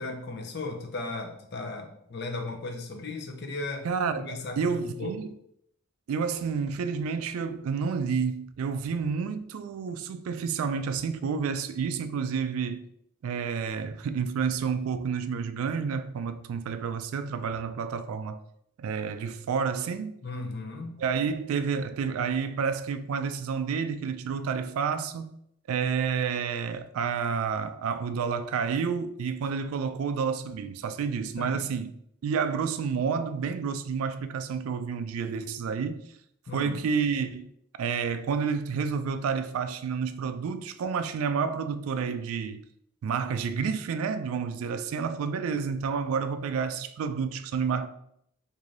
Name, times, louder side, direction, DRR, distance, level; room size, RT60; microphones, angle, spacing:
voice 1, 0.0-3.9 4.2-5.2 20.2-21.0 31.4-31.7 36.5-36.9, left 2 dB, 50° left, 0.5 m, -36 dB
voice 2, 3.8-5.3 6.1-12.8 13.2-18.4 18.8-20.1 21.0-25.3 25.7-31.9 32.2-36.0 36.5-37.5 37.8-42.6 43.0-47.9, right 6 dB, 80° right, 0.3 m, -30 dB
3.2 x 2.6 x 3.7 m
head